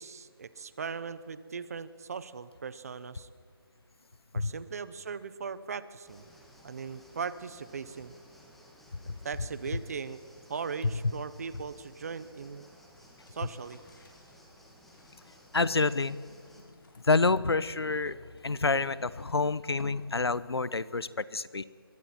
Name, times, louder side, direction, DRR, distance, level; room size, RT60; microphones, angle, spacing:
voice 1, 0.0-3.3 4.3-6.3 6.6-8.1 9.2-10.2 10.5-12.7 13.3-13.8, right 5 dB, 40° right, 15 dB, 1.1 m, -39 dB
sound 1, 6.0-16.6, equal, ahead, 1.7 m, -57 dB
sound 2, 13.0-20.7, left 2 dB, 60° left, 7.2 m, -57 dB
voice 2, 15.5-16.2 17.0-18.2 18.4-21.6, left 3 dB, 85° left, 18 dB, 1.0 m, -28 dB
29.5 x 23.0 x 4.5 m, 2.2 s
figure-of-eight pair, 165°, 13 cm